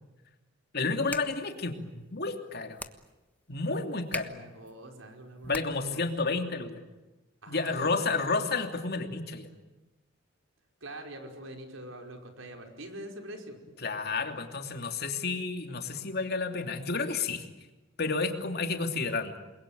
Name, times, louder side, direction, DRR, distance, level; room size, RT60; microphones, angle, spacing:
voice 1, 0.7-2.8 3.5-4.3 5.4-6.8 7.5-9.5 13.8-17.4 18.0-19.3, left 3 dB, 55° left, 5 dB, 2.9 m, -31 dB
sound 1, 0.8-6.0, left 2 dB, 10° left, 1.3 m, -44 dB
voice 2, 4.1-5.6 5.8-6.0 7.4-8.1 10.8-13.6, right 1 dB, 85° right, 4 dB, 5.1 m, -44 dB
29.0 x 22.0 x 9.3 m, 1.1 s
head